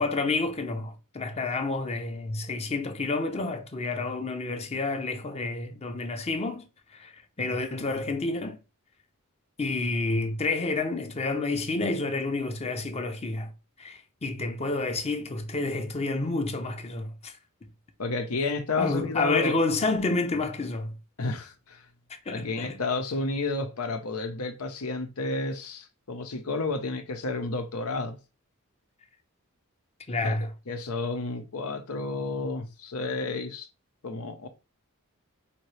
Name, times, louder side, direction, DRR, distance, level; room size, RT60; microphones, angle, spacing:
voice 1, 0.0-8.6 9.6-13.5 13.8-17.3 18.8-20.9 22.1-22.8 30.1-30.5, left 3 dB, 30° left, 0.7 m, -29 dB
voice 2, 18.0-19.6 21.2-21.8 22.3-28.2 30.2-30.4 30.7-33.7 34.0-34.5, left 3 dB, 90° left, 0.9 m, -31 dB
5.1 x 2.9 x 3.2 m
head